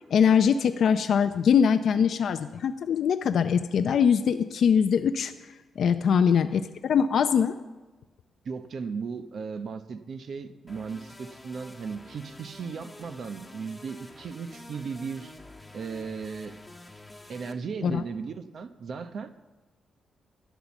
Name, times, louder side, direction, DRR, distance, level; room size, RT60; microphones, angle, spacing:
voice 1, 0.1-5.3 5.8-7.6 17.8-18.0, left 7 dB, 65° left, 9 dB, 0.5 m, -22 dB
voice 2, 8.4-15.3 15.7-16.6 17.3-19.3, right 5 dB, 55° right, 10 dB, 0.8 m, -36 dB
sound 1, 10.7-17.5, left 1 dB, 10° left, 1.3 m, -48 dB
12.5 x 10.5 x 7.1 m, 1.2 s
cardioid pair, 120°, 0 cm